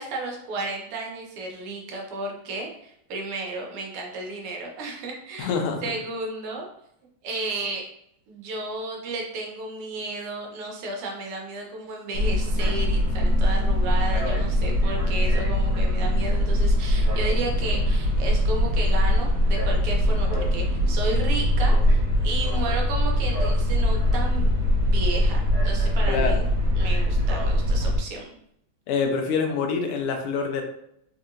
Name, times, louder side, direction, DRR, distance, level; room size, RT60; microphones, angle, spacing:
voice 1, 0.0-5.5 5.8-6.7 7.2-7.9 8.3-24.5 24.8-26.5 26.7-28.3, right 3 dB, 85° right, 0 dB, 1.7 m, -33 dB
voice 2, 5.4-5.8 26.1-26.4 28.9-30.6, left 5 dB, 85° left, 3 dB, 1.6 m, -25 dB
sound 1, 12.1-28.0, equal, 55° right, 1.0 m, -22 dB
4.2 x 2.8 x 2.4 m, 0.73 s
omnidirectional pair, 2.4 m